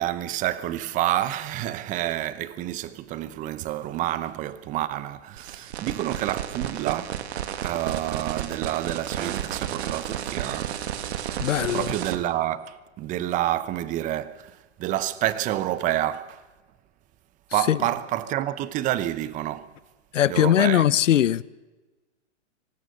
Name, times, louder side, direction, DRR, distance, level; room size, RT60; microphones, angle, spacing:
voice 1, 0.0-7.2 7.6-10.7 11.7-16.4 17.5-19.7 20.3-20.9, right 13 dB, 20° right, 0.9 m, -28 dB
sound 1, 5.4-12.2, right 10 dB, 60° right, 2.1 m, -32 dB
voice 2, 11.4-11.9 17.7-17.8 20.1-21.4, left 11 dB, 90° left, 0.8 m, -20 dB
23.5 x 19.5 x 6.7 m
hypercardioid pair, 150°, 37 cm